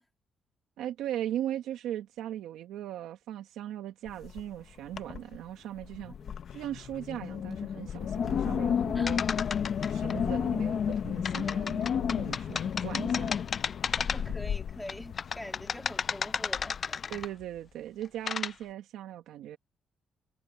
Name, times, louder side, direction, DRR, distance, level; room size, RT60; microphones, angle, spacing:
voice 1, 0.8-6.1 6.5-9.2 9.9-13.4 13.9-14.0 17.1-19.6, right 12 dB, 85° right, 1.4 m, -38 dB
Wind, 4.1-4.5 4.9-5.4 5.8-17.2, left 8 dB, 60° left, 1.2 m, -32 dB
voice 2, 6.1-6.4 8.9-9.1 12.5-13.0 14.0-17.0, left 1 dB, 5° left, 2.8 m, -45 dB
sound 1, 9.1-10.1 11.2-14.4 14.9-17.4 18.0-18.5, left 6 dB, 45° left, 0.6 m, -33 dB
cardioid pair, 90°, 0 cm